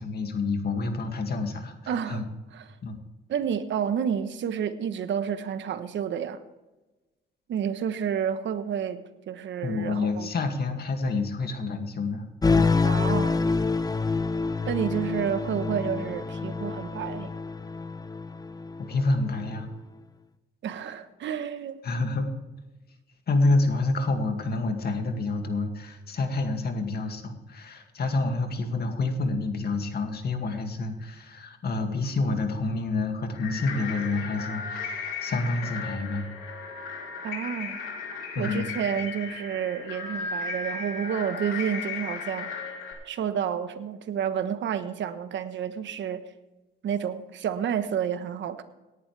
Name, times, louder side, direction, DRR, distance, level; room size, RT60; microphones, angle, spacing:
voice 1, 0.0-2.2 2.8-3.0 9.6-12.7 18.9-19.7 21.8-22.3 23.3-36.2 38.3-38.6, left 3 dB, 55° left, 5 dB, 2.3 m, -28 dB
voice 2, 1.9-2.2 2.5-2.7 3.3-6.4 7.5-10.3 12.8-13.4 14.6-17.3 20.6-21.8 37.2-37.8 38.4-42.5 43.0-46.2 46.8-48.6, right 8 dB, 70° right, 10 dB, 1.2 m, -30 dB
sound 1, 12.4-19.2, left 4 dB, 20° left, 0.8 m, -27 dB
sound 2, 33.3-42.9, left 4 dB, 85° left, 3.5 m, -35 dB
18.0 x 11.0 x 3.4 m, 1.1 s
cardioid pair, 90°, 20 cm